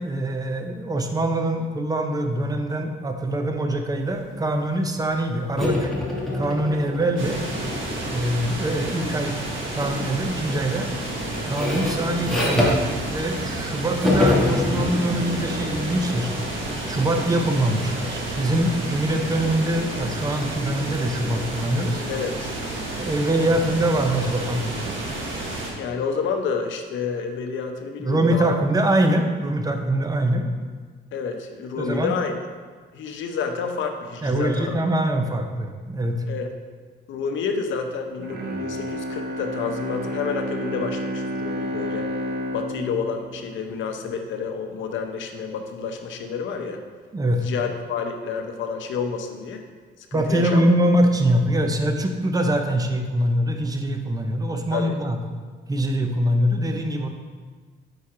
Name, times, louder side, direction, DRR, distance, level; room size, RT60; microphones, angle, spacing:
voice 1, 0.0-5.9 6.3-7.4 8.1-9.4 9.7-10.9 11.5-16.3 16.8-22.0 23.0-25.0 28.0-30.5 31.8-32.1 34.2-36.2 47.1-47.5 50.1-55.2 55.7-57.1, right 1 dB, 20° right, 5 dB, 0.6 m, -23 dB
sound 1, 5.6-8.9 9.8-10.1 10.4-13.7 14.0-17.6, left 2 dB, ahead, 1.6 m, -26 dB
sound 2, 7.2-25.7, right 2 dB, 75° right, 1.2 m, -31 dB
voice 2, 22.1-22.5 25.8-28.5 31.1-32.4 32.9-34.7 36.3-36.5 37.1-42.1 42.5-46.8 47.4-49.6 50.0-50.6 54.7-55.0, left 5 dB, 75° left, 5 dB, 0.7 m, -29 dB
Bowed string instrument, 38.2-44.4 44.8-44.9, equal, 55° right, 0.9 m, -31 dB
4.8 x 4.4 x 4.8 m, 1.5 s
cardioid pair, 90°, 20 cm